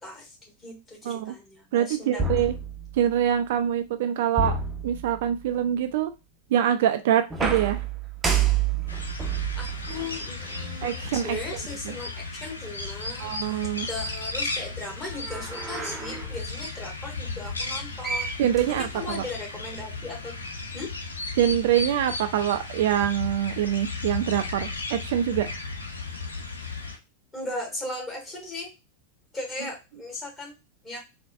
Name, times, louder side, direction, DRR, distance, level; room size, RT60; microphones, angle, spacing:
voice 1, 0.0-2.3 9.5-18.4 18.7-20.3 20.7-20.9 27.3-28.7 29.3-30.6 30.8-31.0, left 2 dB, 20° left, 0 dB, 1.6 m, -37 dB
voice 2, 1.7-2.5 3.0-4.5 4.8-6.1 6.5-7.8 10.8-11.3 13.2-13.9 18.4-19.2 21.4-25.5, right 10 dB, 55° right, 8 dB, 0.3 m, -24 dB
sound 1, 2.2-3.3 4.4-5.5 7.3-10.9 11.7-11.8 15.1-16.4 17.7-17.8 18.0-19.3, right 6 dB, 15° right, 0.7 m, -30 dB
sound 2, 8.9-27.0, left 3 dB, 75° left, 0.6 m, -35 dB
3.9 x 2.5 x 2.4 m, 0.25 s
figure-of-eight pair, 90°, 0 cm